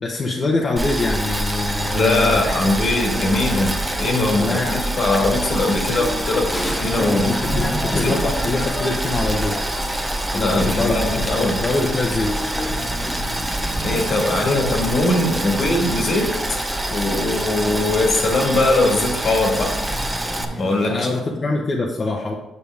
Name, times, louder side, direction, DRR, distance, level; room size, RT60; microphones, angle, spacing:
voice 1, 0.0-2.7 4.4-4.8 7.2-9.6 10.3-12.5 20.9-22.3, left 3 dB, 40° left, -2 dB, 1.0 m, -24 dB
Boiling, 0.8-20.4, right 1 dB, 10° right, 0.9 m, -26 dB
voice 2, 1.9-7.4 7.9-8.2 10.3-11.6 13.8-16.4 16.9-19.8 20.6-21.1, left 2 dB, 55° left, 1 dB, 1.8 m, -21 dB
sound 1, 3.0-21.2, left 1 dB, 15° left, 1.5 m, -32 dB
7.3 x 6.7 x 3.5 m, 0.96 s
cardioid pair, 90°, 0 cm